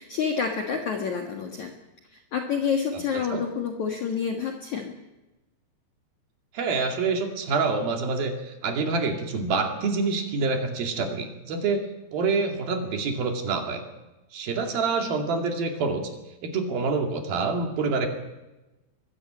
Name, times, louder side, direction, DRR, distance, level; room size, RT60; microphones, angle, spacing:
voice 1, 0.0-1.7 2.1-4.9, left 6 dB, 55° left, 3 dB, 2.4 m, -28 dB
voice 2, 6.5-11.8 12.1-13.8 14.3-16.0 16.4-18.1, right 4 dB, 60° right, 4 dB, 4.0 m, -26 dB
22.0 x 16.0 x 8.9 m, 1.0 s
omnidirectional pair, 5.2 m